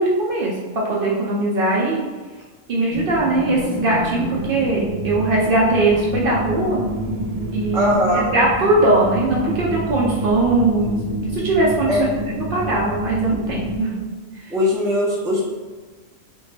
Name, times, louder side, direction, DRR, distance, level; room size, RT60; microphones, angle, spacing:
voice 1, 0.0-2.1 2.7-6.8 7.5-11.0 11.3-12.1 12.5-14.0, right 2 dB, 55° right, -4 dB, 0.6 m, -20 dB
sound 1, 2.9-13.8, right 1 dB, 90° right, 1.0 m, -28 dB
voice 2, 7.7-8.3 11.9-12.1 14.5-15.4, left 1 dB, 5° right, -6 dB, 0.3 m, -20 dB
3.5 x 2.1 x 3.2 m, 1.4 s
omnidirectional pair, 1.3 m